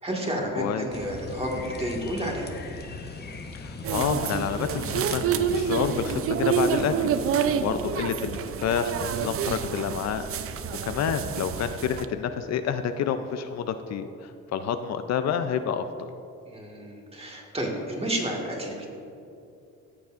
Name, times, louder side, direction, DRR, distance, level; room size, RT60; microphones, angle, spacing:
voice 1, 0.0-2.5 7.4-7.7 10.6-10.9 16.5-18.9, right 1 dB, 20° right, -1 dB, 1.7 m, -31 dB
voice 2, 0.6-0.9 3.5-5.2 5.5-10.5 10.8-16.1, left 7 dB, 60° left, 9 dB, 0.5 m, -29 dB
sound 1, 0.9-6.1, left 3 dB, 35° left, 0.9 m, -39 dB
sound 2, 3.8-12.0, right 7 dB, 50° right, 0.5 m, -28 dB
14.5 x 6.9 x 2.5 m, 2.6 s
cardioid pair, 90°, 30 cm